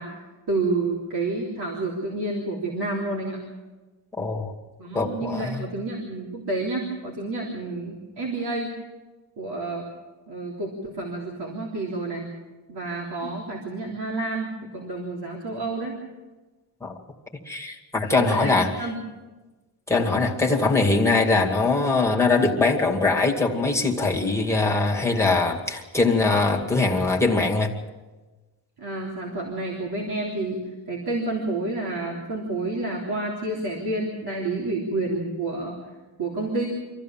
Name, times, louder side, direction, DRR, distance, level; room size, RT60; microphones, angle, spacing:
voice 1, 0.0-3.4 4.8-8.7 9.4-9.9 10.3-12.3 12.7-16.0 18.1-19.0 28.8-35.8 36.2-36.7, right 2 dB, 60° right, -2 dB, 3.6 m, -29 dB
voice 2, 4.2-4.5 4.9-5.7 16.8-16.9 17.5-18.7 19.9-27.7, left 3 dB, 5° left, -1 dB, 2.3 m, -22 dB
25.5 x 15.0 x 7.4 m, 1.2 s
wide cardioid pair, 155°, 43 cm